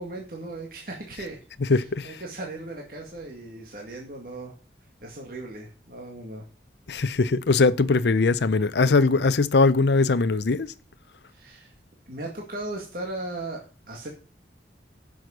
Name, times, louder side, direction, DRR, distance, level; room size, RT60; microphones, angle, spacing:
voice 1, 0.0-4.5 5.0-6.4 11.3-11.7 12.1-14.1, right 2 dB, 50° right, 2.0 m, -37 dB
voice 2, 1.7-2.1 6.9-10.7, left 3 dB, 70° left, 0.6 m, -21 dB
10.5 x 6.4 x 6.6 m
head